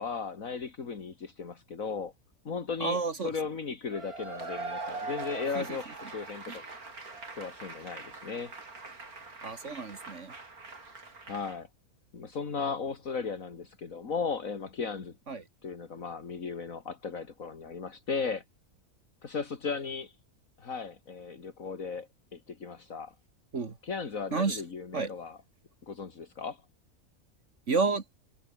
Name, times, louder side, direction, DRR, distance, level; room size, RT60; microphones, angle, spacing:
voice 1, 0.0-2.1 2.4-6.7 7.3-8.5 11.2-11.7 12.1-15.2 15.6-18.4 19.2-20.2 20.6-23.1 23.8-25.4 25.9-26.6, left 5 dB, 65° left, 2.5 m, -36 dB
voice 2, 2.8-3.3 5.5-5.9 6.5-6.6 9.4-10.3 15.3-15.4 23.5-23.8 24.3-24.6 24.9-25.1 27.7-28.0, right 4 dB, 55° right, 2.1 m, -31 dB
Cheering / Applause / Crowd, 3.9-11.6, right 3 dB, 80° right, 4.3 m, -42 dB
omnidirectional pair, 1.5 m